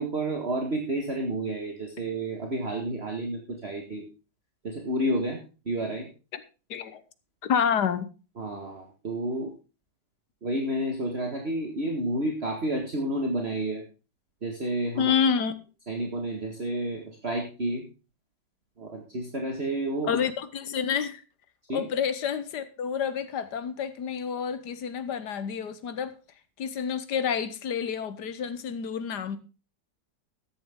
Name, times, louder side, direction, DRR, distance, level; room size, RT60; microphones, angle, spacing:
voice 1, 0.0-4.0 4.6-5.4 5.7-6.1 8.4-9.5 10.4-13.8 14.4-15.1 15.9-17.8 18.8-20.2 21.7-21.8, right 1 dB, 35° right, 2.0 m, -30 dB
voice 2, 6.7-7.0 7.4-8.1 15.0-15.5 20.1-21.2 21.7-26.1 26.6-29.4, left 7 dB, 65° left, 1.6 m, -28 dB
13.5 x 10.5 x 3.7 m
omnidirectional pair, 1.9 m